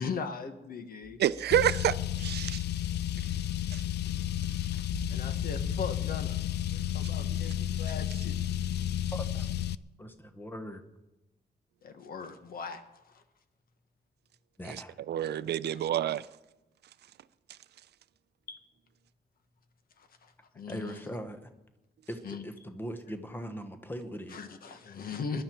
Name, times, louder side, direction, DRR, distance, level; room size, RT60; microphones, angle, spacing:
voice 1, 0.0-1.2 4.7-4.8 5.1-6.4 6.7-8.4 11.8-13.2 18.5-18.6 20.0-21.0 22.2-22.4 24.3-25.4, left 5 dB, 60° left, 1.3 m, -39 dB
sound 1, 1.0-6.2, right 2 dB, 5° right, 3.9 m, -46 dB
voice 2, 1.2-2.6 3.7-3.8 14.7-14.8 15.1-16.3, right 11 dB, 80° right, 0.5 m, -28 dB
Car, 1.5-9.8, left 12 dB, 85° left, 0.4 m, -32 dB
voice 3, 9.1-9.5 10.0-10.8 14.6-15.0 20.7-21.5 22.1-24.4, equal, 10° left, 1.1 m, -40 dB
21.0 x 11.5 x 4.5 m
wide cardioid pair, 175°, 17 cm